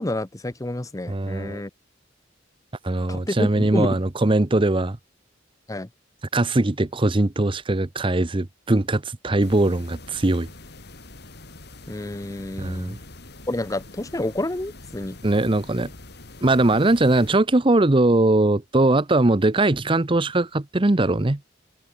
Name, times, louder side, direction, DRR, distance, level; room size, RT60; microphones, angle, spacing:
voice 1, 0.0-1.7 3.1-4.0 5.7-5.9 11.9-13.0 13.5-15.2, left 1 dB, 20° left, 0.8 m, -29 dB
voice 2, 1.1-1.6 2.8-5.0 6.3-10.5 12.6-13.0 15.2-15.9 16.4-21.4, right 2 dB, 25° right, 0.8 m, -20 dB
sound 1, 9.4-17.4, left 2 dB, 60° left, 3.7 m, -44 dB
open air
head